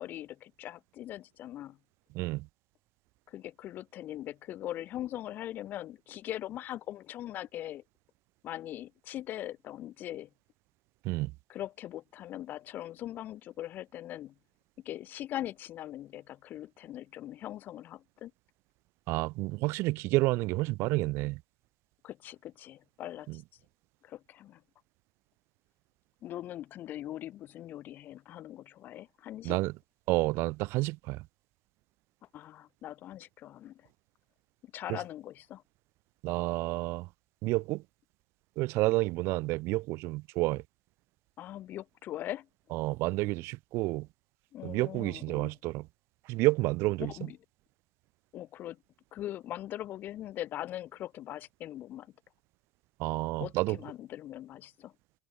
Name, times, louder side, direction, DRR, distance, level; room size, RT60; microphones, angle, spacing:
voice 1, 0.0-1.8 3.3-7.8 8.4-10.3 11.5-14.3 14.8-18.3 22.0-23.4 24.0-24.6 26.2-29.6 32.3-33.9 34.6-35.6 41.4-42.5 44.5-45.5 47.0-47.4 48.3-48.8 49.1-52.1 53.4-54.9, left 13 dB, 40° left, 1.1 m, -41 dB
voice 2, 2.1-2.5 11.0-11.3 19.1-21.4 23.3-23.4 29.4-29.7 30.1-31.2 34.9-35.0 36.2-37.1 37.4-37.8 38.6-40.6 42.7-44.1 44.6-45.9 46.3-47.1 53.0-53.8, right 21 dB, 60° right, 1.5 m, -30 dB
cardioid pair, 170°, 5 cm